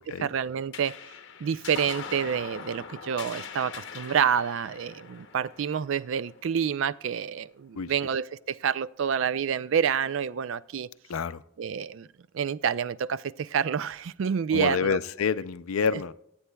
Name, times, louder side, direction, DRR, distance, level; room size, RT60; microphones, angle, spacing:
voice 1, 0.2-0.9 1.4-10.9 11.6-12.1 12.3-15.0, right 7 dB, 65° right, 0.3 m, -28 dB
sound 1, 0.7-7.5, left 6 dB, 60° left, 0.8 m, -42 dB
voice 2, 11.1-11.4 14.5-16.1, left 6 dB, 80° left, 0.5 m, -28 dB
22.0 x 8.7 x 2.2 m
head